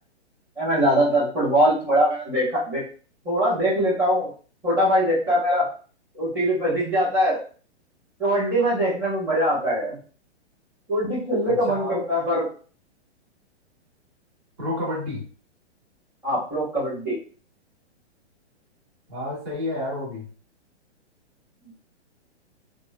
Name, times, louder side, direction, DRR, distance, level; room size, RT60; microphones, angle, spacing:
voice 1, 0.6-2.8 3.2-4.3 4.6-5.7 6.1-7.4 8.2-10.0 10.9-12.5 16.2-17.2, equal, 5° right, -11 dB, 1.0 m, -22 dB
voice 2, 11.5-11.9 14.6-15.2 19.1-20.3, left 1 dB, 35° right, -4 dB, 1.3 m, -30 dB
2.9 x 2.1 x 2.2 m, 0.41 s
hypercardioid pair, 140°, 35 cm